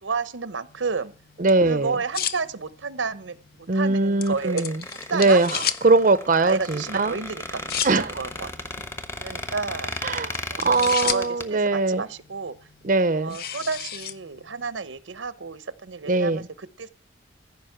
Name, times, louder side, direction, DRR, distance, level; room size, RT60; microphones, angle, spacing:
voice 1, 0.0-1.1 1.6-4.7 5.0-5.4 6.4-8.5 9.2-9.9 10.5-12.6 13.1-16.9, right 4 dB, 85° right, 15 dB, 0.9 m, -31 dB
sound 1, 0.7-14.7, left 9 dB, 50° left, 0.6 m, -36 dB
voice 2, 1.4-1.9 3.7-4.7 5.1-7.1 7.8-8.1 10.0-12.0 12.8-13.4 16.1-16.4, right 3 dB, 45° right, 13 dB, 0.6 m, -21 dB
Squeak, 4.2-11.4, left 1 dB, 15° left, 1.1 m, -35 dB
15.0 x 5.2 x 8.8 m, 0.39 s
head